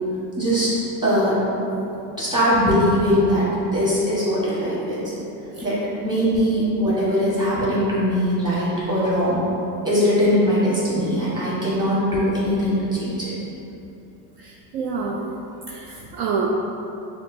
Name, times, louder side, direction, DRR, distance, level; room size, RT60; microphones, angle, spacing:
voice 1, 0.4-0.7 1.0-1.6 2.2-5.0 5.6-9.4 9.8-13.3, equal, 10° right, -9 dB, 1.5 m, -21 dB
voice 2, 14.4-15.2 15.7-16.5, right 5 dB, 50° right, -1 dB, 0.5 m, -27 dB
6.2 x 2.3 x 2.7 m, 2.9 s
supercardioid pair, 110°, 50 cm